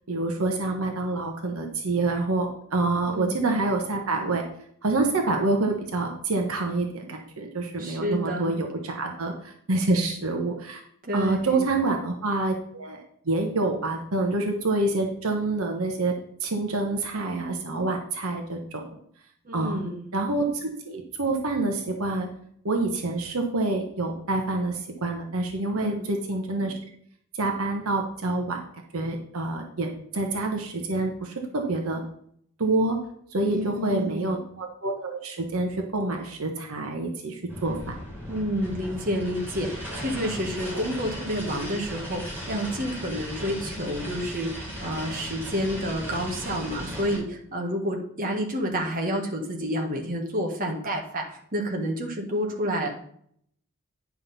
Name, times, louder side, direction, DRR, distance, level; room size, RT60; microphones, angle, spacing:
voice 1, 0.1-4.4 4.8-10.8 11.1-16.1 16.4-19.0 19.5-19.8 20.1-22.3 22.6-26.7 27.3-28.6 28.9-32.0 32.6-33.0 33.3-38.0, right 2 dB, 70° right, 3 dB, 1.0 m, -27 dB
voice 2, 3.1-3.4 7.8-8.5 11.0-11.6 19.4-20.0 25.7-26.1 33.5-34.3 38.3-52.9, equal, 40° right, 1 dB, 1.3 m, -29 dB
sound 1, 37.5-47.2, equal, 10° right, 3.8 m, -36 dB
9.6 x 5.7 x 4.1 m, 0.66 s
head